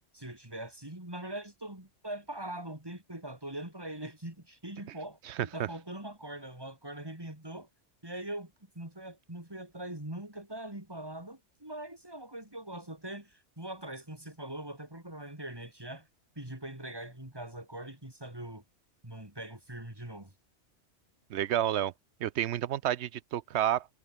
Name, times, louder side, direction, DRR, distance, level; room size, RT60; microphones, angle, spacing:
voice 1, 0.1-7.7 8.0-16.1 16.4-18.6 19.0-20.3, right 1 dB, 20° right, 4.1 m, -42 dB
voice 2, 5.2-5.7 21.3-21.9 22.2-23.9, right 11 dB, 70° right, 0.9 m, -30 dB
omnidirectional pair, 1.3 m